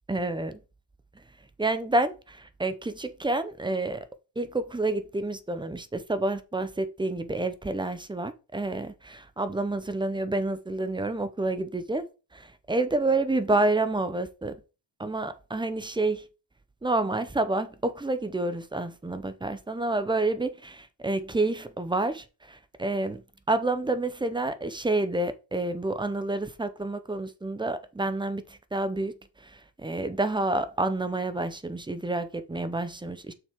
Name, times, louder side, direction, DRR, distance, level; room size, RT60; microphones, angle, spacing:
voice 1, 0.1-0.6 1.6-4.0 4.4-12.0 12.3-14.6 15.0-16.3 16.8-23.2 23.5-33.3, right 2 dB, 10° right, 0.8 m, -29 dB
7.1 x 6.0 x 3.6 m
cardioid pair, 115°, 43 cm